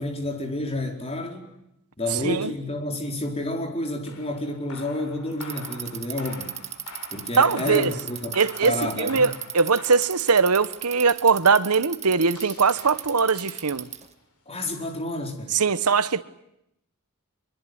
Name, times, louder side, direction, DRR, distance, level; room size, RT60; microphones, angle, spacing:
voice 1, 0.0-1.5 2.0-6.5 7.1-9.3 14.5-15.5, left 1 dB, 25° left, 4.5 m, -30 dB
sound 1, 4.0-14.2, left 4 dB, 75° left, 3.8 m, -46 dB
Bicycle, 5.3-14.1, right 10 dB, 30° right, 1.7 m, -36 dB
voice 2, 7.4-7.9 8.3-13.9 15.5-16.2, right 5 dB, 85° right, 1.1 m, -21 dB
24.5 x 23.5 x 9.5 m
head